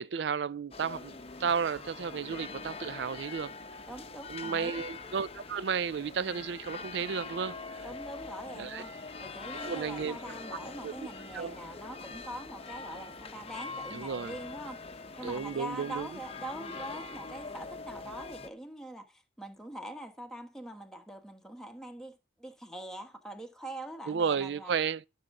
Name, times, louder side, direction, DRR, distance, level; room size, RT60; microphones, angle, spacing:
voice 1, 0.0-3.5 4.3-7.6 8.6-8.8 9.6-10.2 10.8-11.1 11.3-11.6 13.9-14.4 15.2-16.1 24.1-25.0, right 6 dB, 65° right, 0.4 m, -33 dB
sound 1, 0.7-18.5, left 4 dB, 30° left, 0.8 m, -43 dB
voice 2, 3.9-4.8 7.8-8.9 9.2-14.8 15.1-24.7, right 1 dB, 5° left, 1.3 m, -43 dB
13.5 x 6.6 x 3.7 m
head